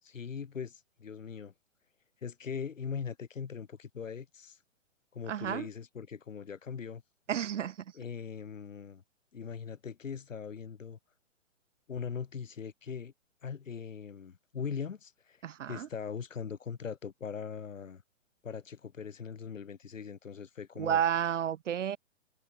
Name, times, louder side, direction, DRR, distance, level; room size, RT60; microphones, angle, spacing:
voice 1, 0.0-1.5 2.2-4.6 5.1-7.0 7.9-9.0 9.3-11.0 11.9-13.1 13.4-18.0 18.4-21.0, left 6 dB, 80° left, 4.6 m, -40 dB
voice 2, 5.3-5.7 7.3-7.8 15.4-15.9 20.8-22.0, right 9 dB, 70° right, 1.1 m, -31 dB
hypercardioid pair, 145°, 38 cm